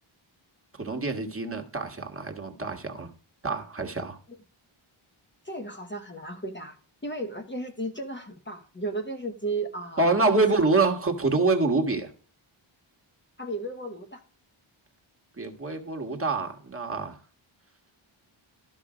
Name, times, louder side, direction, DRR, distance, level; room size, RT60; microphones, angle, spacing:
voice 1, 0.8-3.1 3.4-4.2 10.0-12.1 15.4-17.2, right 3 dB, 25° right, 3 dB, 1.6 m, -26 dB
voice 2, 5.4-6.8 7.0-10.4 13.4-14.2, right 2 dB, 20° left, 5 dB, 1.0 m, -34 dB
13.0 x 5.2 x 4.9 m, 0.41 s
wide cardioid pair, 125°, 50 cm